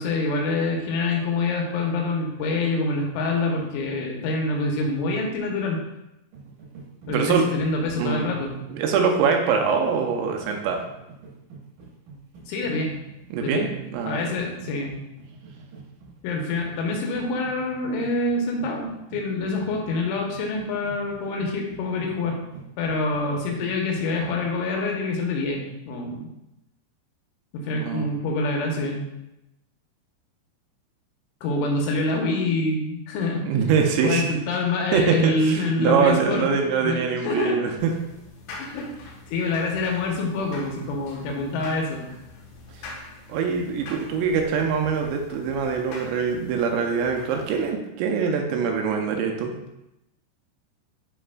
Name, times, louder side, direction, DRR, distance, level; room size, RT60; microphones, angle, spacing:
voice 1, 0.0-5.8 7.1-8.5 12.5-12.9 13.4-13.7 14.1-15.0 16.2-22.4 22.8-26.3 27.5-29.0 31.4-33.5 34.0-36.5 36.8-37.6 38.6-42.2, left 2 dB, 90° left, 0 dB, 3.4 m, -26 dB
sound 1, 6.3-24.7, right 4 dB, 65° right, 2.3 m, -45 dB
voice 2, 7.1-7.5 8.0-8.2 8.7-10.8 13.3-14.4 27.8-28.1 33.4-34.2 34.9-37.9 43.3-49.5, right 6 dB, 85° right, 2 dB, 2.8 m, -23 dB
sound 2, 37.8-47.7, left 2 dB, 70° left, 2.7 m, -44 dB
10.0 x 4.2 x 2.3 m, 0.89 s
omnidirectional pair, 5.3 m